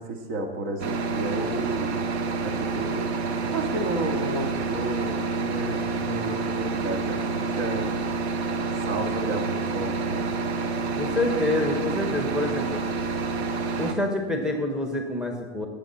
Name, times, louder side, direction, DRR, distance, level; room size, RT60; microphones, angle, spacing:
voice 1, 0.0-2.0 2.4-8.1 8.8-10.3, right 2 dB, 55° right, 4 dB, 2.2 m, -32 dB
sound 1, 0.8-13.9, right 4 dB, 75° right, 1.4 m, -28 dB
voice 2, 10.9-12.8 13.8-15.7, left 2 dB, ahead, 2 dB, 1.4 m, -27 dB
17.5 x 7.9 x 4.3 m, 1.3 s
hypercardioid pair, 115°, 32 cm